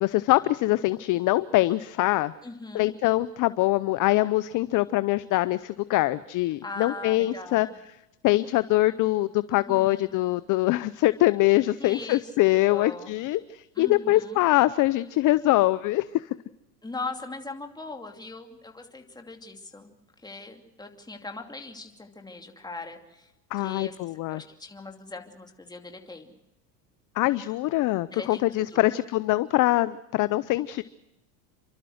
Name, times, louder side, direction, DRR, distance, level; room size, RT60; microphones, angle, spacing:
voice 1, 0.0-2.3 2.7-7.7 8.2-16.2 23.5-24.4 27.2-30.8, left 17 dB, 40° left, 16 dB, 0.7 m, -23 dB
voice 2, 2.4-2.9 6.6-7.8 9.7-10.1 11.8-12.3 12.7-13.2 13.7-14.4 16.8-19.9 20.2-23.3 23.6-24.0 24.3-26.3 28.1-28.9, left 3 dB, 10° left, 4 dB, 2.7 m, -40 dB
29.5 x 12.5 x 7.9 m, 0.94 s
supercardioid pair, 115°, 49 cm